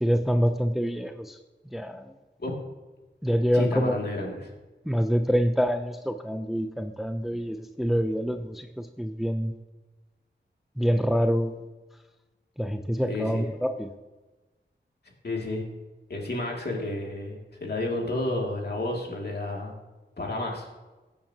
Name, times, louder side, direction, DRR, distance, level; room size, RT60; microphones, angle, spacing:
voice 1, 0.0-1.4 1.7-2.0 3.2-4.0 4.9-9.5 10.8-11.6 12.6-13.9, equal, ahead, 7 dB, 0.6 m, -26 dB
voice 2, 3.5-4.5 13.1-13.4 15.2-15.6 16.1-19.7 20.2-20.8, left 2 dB, 55° left, -1 dB, 2.5 m, -31 dB
15.5 x 8.8 x 2.9 m, 1.2 s
wide cardioid pair, 75°, 20 cm